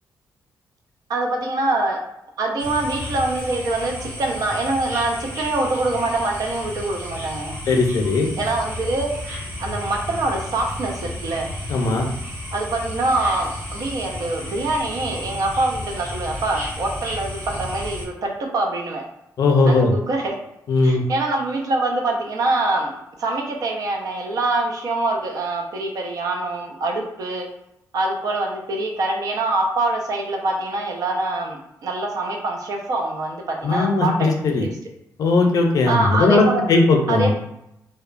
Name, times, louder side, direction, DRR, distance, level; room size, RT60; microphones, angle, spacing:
voice 1, 1.1-2.0 2.4-7.5 8.4-9.1 9.6-11.5 12.5-19.0 19.7-20.4 20.8-22.9 23.2-27.5 27.9-34.3 34.6-34.7 35.9-36.6 37.1-37.3, right 2 dB, 65° right, 2 dB, 0.5 m, -24 dB
sound 1, 2.6-18.0, left 1 dB, 40° right, 0.9 m, -33 dB
voice 2, 7.7-8.3 11.7-12.1 19.4-19.9 20.7-21.0 33.6-34.7 35.2-37.3, left 3 dB, 65° left, 2 dB, 0.5 m, -18 dB
2.8 x 2.1 x 2.4 m, 0.83 s
cardioid pair, 110°, 7 cm